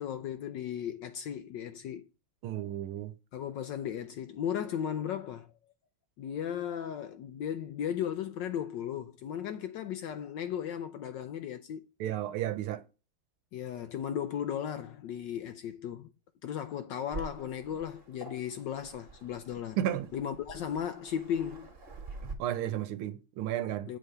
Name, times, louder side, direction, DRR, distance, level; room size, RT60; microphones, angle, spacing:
voice 1, 0.0-2.1 3.3-5.5 6.2-11.9 13.5-16.1 16.4-19.8 20.1-21.7 23.9-24.0, left 9 dB, 75° left, 1.1 m, -36 dB
voice 2, 2.4-3.1 12.0-12.8 19.8-20.1 22.2-23.9, right 11 dB, 85° right, 1.6 m, -33 dB
Waves surf, 17.1-22.3, right 3 dB, 30° right, 1.4 m, -46 dB
7.8 x 3.4 x 5.3 m
omnidirectional pair, 2.4 m